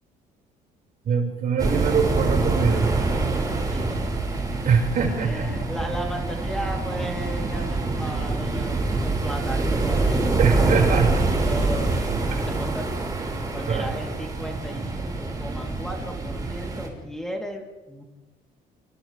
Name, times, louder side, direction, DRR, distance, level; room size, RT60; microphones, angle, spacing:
voice 1, 1.0-2.9 4.7-5.5 10.4-11.2 12.3-12.4 13.7-13.9, right 6 dB, 55° right, 1 dB, 5.5 m, -23 dB
sound 1, 1.6-16.9, right 3 dB, 20° right, 5.3 m, -25 dB
voice 2, 3.7-4.7 5.2-10.7 11.3-12.9 13.5-18.0, equal, 5° left, 0 dB, 3.3 m, -35 dB
30.0 x 27.0 x 3.4 m, 1.1 s
cardioid pair, 110°, 17 cm